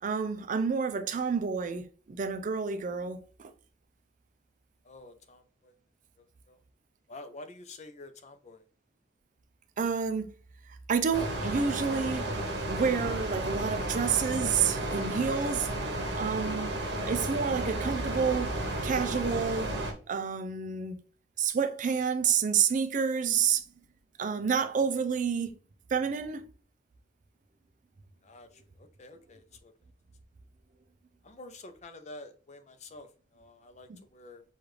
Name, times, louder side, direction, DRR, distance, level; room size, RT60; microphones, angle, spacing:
voice 1, 0.0-3.5 9.8-10.3 10.9-12.3 12.7-15.7 16.2-16.7 17.1-18.5 18.8-19.7 20.1-21.0 21.4-23.6 24.2-25.5 25.9-26.5 33.9-34.0, right 6 dB, 45° right, 0.4 m, -29 dB
voice 2, 4.8-5.7 6.2-6.6 7.1-8.6 28.2-29.7 31.2-34.4, left 2 dB, 40° left, 0.6 m, -49 dB
sound 1, 11.1-19.9, right 1 dB, 75° right, 1.1 m, -33 dB
6.4 x 2.4 x 3.2 m
head